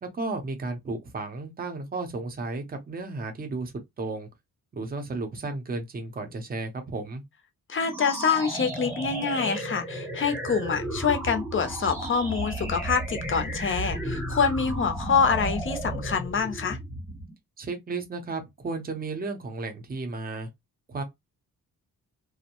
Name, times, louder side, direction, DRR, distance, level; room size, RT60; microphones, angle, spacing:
voice 1, 0.0-4.3 4.7-7.2 17.6-20.5 20.9-21.0, right 3 dB, 25° right, 0.6 m, -33 dB
voice 2, 7.7-16.8, left 6 dB, 35° left, 0.5 m, -26 dB
sound 1, 7.8-17.3, right 1 dB, 5° right, 0.8 m, -33 dB
2.6 x 2.0 x 2.8 m
wide cardioid pair, 165°, 34 cm